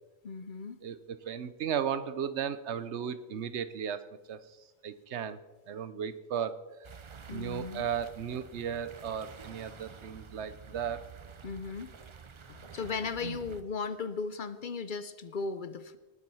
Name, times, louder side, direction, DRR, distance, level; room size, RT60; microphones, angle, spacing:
voice 1, 0.2-0.8 7.3-7.9 11.4-11.9 12.7-16.0, left 4 dB, 55° left, 13 dB, 0.7 m, -36 dB
voice 2, 0.8-4.0 4.3-4.4 4.8-5.4 5.7-6.6 7.3-11.0 13.2-13.4, right 8 dB, 80° right, 13 dB, 1.1 m, -35 dB
sound 1, 6.8-13.6, right 6 dB, 35° right, 0.6 m, -49 dB
19.0 x 7.5 x 5.5 m, 1.2 s
omnidirectional pair, 1.1 m